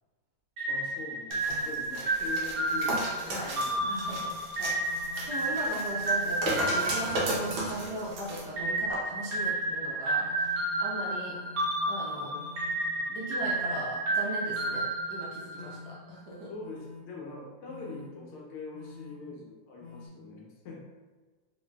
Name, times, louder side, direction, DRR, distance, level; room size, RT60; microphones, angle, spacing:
sound 1, 0.6-8.0 8.6-15.8, right 2 dB, 55° right, 1.1 m, -31 dB
voice 1, 0.7-3.8 4.8-5.0 12.1-12.4 12.9-13.0 15.7-15.9 16.5-20.8, left 4 dB, 80° left, -2 dB, 1.5 m, -43 dB
sound 2, 1.3-8.4 8.9-9.0, right 1 dB, 70° right, 1.4 m, -35 dB
sound 3, 2.7-3.1 3.8-4.2 4.9-5.3 5.9-6.3 7.0-7.4 8.1-8.5 9.1-9.5 10.2-10.6 11.3-11.7 12.3-12.7 13.4-13.8 14.5-14.9 15.5-15.9 16.6-17.0 17.7-18.1 18.7-19.1 19.8-20.1, left 4 dB, 25° left, 0.3 m, -47 dB
voice 2, 3.9-11.4 11.9-12.3 13.1-16.5, right 1 dB, 85° right, -4 dB, 0.8 m, -38 dB
3.8 x 3.0 x 2.2 m, 1.3 s
omnidirectional pair, 2.4 m